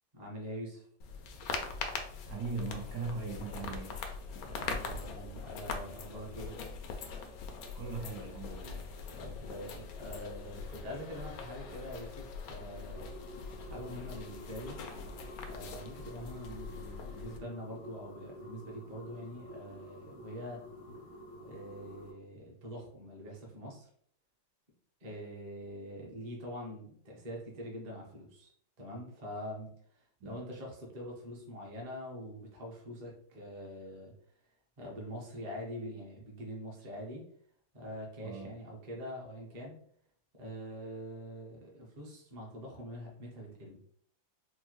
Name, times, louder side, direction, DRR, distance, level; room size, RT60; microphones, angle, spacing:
voice 1, 0.1-0.8 4.4-6.5 9.1-13.1 13.7-14.8 15.5-20.6 21.4-23.9 25.0-28.5 28.8-29.7 30.0-34.1 34.8-37.2 37.7-39.8 40.3-43.8, equal, 40° right, 0.6 m, -44 dB
sound 1, 1.0-17.4, left 4 dB, 90° left, 0.7 m, -42 dB
voice 2, 2.3-4.0 7.7-8.9 30.2-30.3 38.2-38.5, right 3 dB, 70° right, 1.1 m, -39 dB
sound 2, 12.9-22.1, left 1 dB, 45° left, 0.6 m, -50 dB
4.4 x 2.1 x 3.0 m
omnidirectional pair, 2.1 m